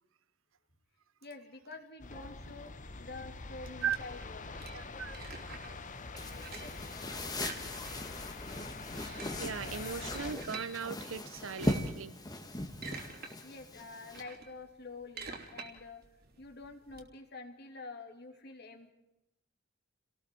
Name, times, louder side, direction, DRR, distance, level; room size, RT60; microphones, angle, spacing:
voice 1, 1.2-4.6 6.3-6.9 13.4-16.0 16.4-18.9, left 3 dB, 55° left, 2.8 m, -48 dB
sound 1, 2.0-10.3, left 3 dB, 40° left, 1.1 m, -45 dB
sound 2, 3.9-5.8 6.1-6.8 7.3-8.2 8.5-8.6 8.9-10.7 11.3-12.0 12.5-13.3 13.7-17.0, right 4 dB, 50° right, 3.0 m, -47 dB
voice 2, 4.7-5.2 8.9-12.2, right 7 dB, 85° right, 0.8 m, -38 dB
sound 3, 6.2-14.2, left 1 dB, 20° left, 1.8 m, -39 dB
29.5 x 19.0 x 4.6 m
head